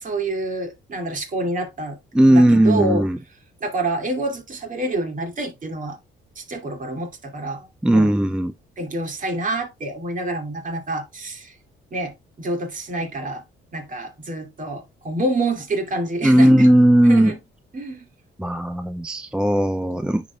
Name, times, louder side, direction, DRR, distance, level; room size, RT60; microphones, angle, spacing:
voice 1, 0.0-2.0 2.3-3.0 3.6-6.0 6.4-7.7 7.9-8.1 8.8-11.5 11.9-13.4 13.7-16.7 17.0-17.4 17.7-18.1, right 2 dB, 40° right, 2.5 m, -27 dB
voice 2, 2.1-3.2 7.8-8.5 16.2-17.3 18.4-20.3, right 1 dB, 5° right, 0.4 m, -16 dB
10.5 x 4.0 x 2.3 m
cardioid pair, 90°, 20 cm